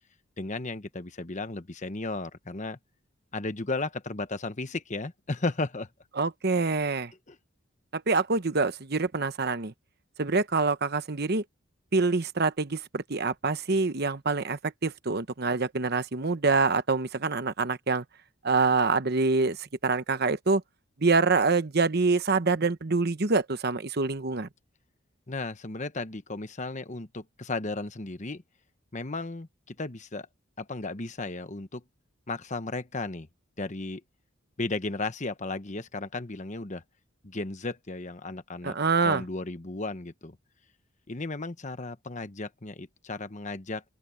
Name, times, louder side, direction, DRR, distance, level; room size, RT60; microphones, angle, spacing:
voice 1, 0.4-2.8 3.3-5.9 7.3-7.4 25.3-28.4 28.9-30.3 30.6-31.8 32.3-33.3 33.6-34.0 34.6-36.8 37.2-38.8 39.0-40.4 41.1-43.9, left 2 dB, 35° left, 1.1 m, -34 dB
voice 2, 6.2-7.1 7.9-9.7 10.2-11.4 11.9-18.0 18.4-20.6 21.0-24.5 38.6-39.2, right 4 dB, 50° right, 1.0 m, -26 dB
open air
head